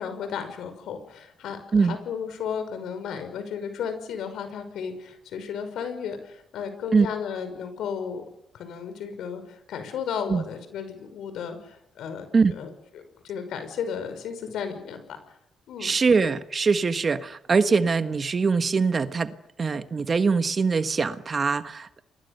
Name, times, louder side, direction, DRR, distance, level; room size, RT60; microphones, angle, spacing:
voice 1, 0.0-8.2 8.5-15.2 15.7-15.9, left 7 dB, 75° left, 5.8 m, -34 dB
voice 2, 15.8-22.0, right 4 dB, 35° right, 1.4 m, -23 dB
30.0 x 22.5 x 6.9 m
cardioid pair, 90°, 0 cm